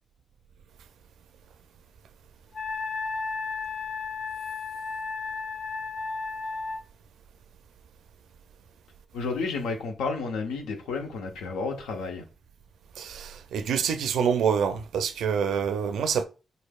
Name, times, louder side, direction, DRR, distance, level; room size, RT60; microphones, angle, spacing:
Wind instrument woodwind instrument, 2.5-6.8, left 4 dB, 45° left, 0.5 m, -33 dB
voice 1, 9.1-12.2, left 4 dB, 80° left, 0.7 m, -31 dB
voice 2, 13.0-16.2, right 7 dB, 75° right, 0.4 m, -26 dB
4.0 x 3.3 x 2.3 m
hypercardioid pair, 40°, 0 cm